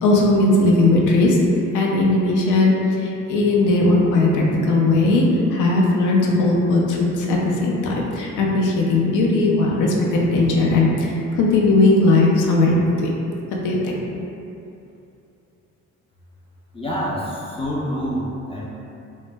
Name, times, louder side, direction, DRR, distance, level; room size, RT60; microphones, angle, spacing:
voice 1, 0.0-1.4 1.7-5.2 5.5-13.1 13.6-14.0, left 2 dB, 80° left, -2 dB, 0.5 m, -18 dB
voice 2, 16.7-18.6, equal, 20° left, -6 dB, 0.3 m, -27 dB
2.1 x 2.0 x 3.2 m, 2.7 s
cardioid pair, 90°, 30 cm